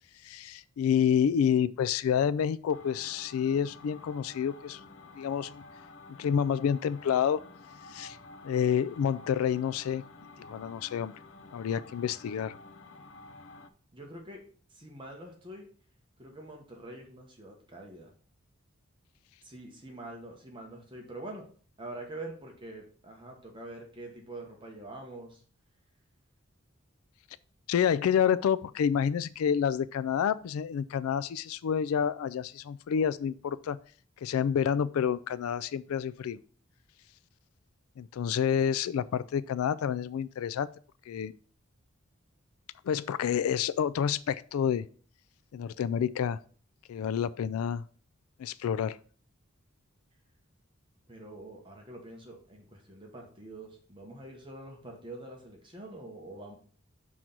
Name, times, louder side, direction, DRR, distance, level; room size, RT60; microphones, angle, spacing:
voice 1, 0.2-4.8 5.2-5.6 6.2-7.4 7.9-8.2 8.4-10.0 10.4-11.1 11.5-12.6 27.7-33.8 34.2-36.4 38.0-40.7 41.1-41.3 42.8-44.9 45.5-46.4 46.9-47.8 48.4-49.0, left 8 dB, 90° left, 0.3 m, -28 dB
sound 1, 2.7-13.7, left 2 dB, 60° left, 0.7 m, -50 dB
voice 2, 13.9-14.4 14.7-15.7 16.2-18.1 19.4-21.5 21.8-25.4 51.1-56.6, right 2 dB, 25° right, 1.1 m, -45 dB
6.1 x 3.9 x 5.9 m
head